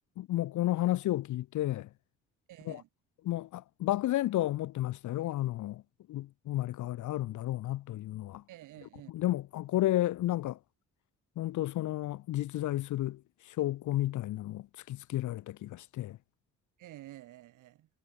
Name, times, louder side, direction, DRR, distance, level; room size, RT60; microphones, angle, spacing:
voice 1, 0.2-1.9 2.7-2.8 3.2-5.8 6.1-8.4 9.1-10.6 11.4-13.2 13.5-16.2, left 15 dB, 75° left, 0.9 m, -32 dB
voice 2, 2.5-2.9 8.5-9.1 16.8-17.9, right 15 dB, 85° right, 6.5 m, -50 dB
cardioid pair, 90°, 30 cm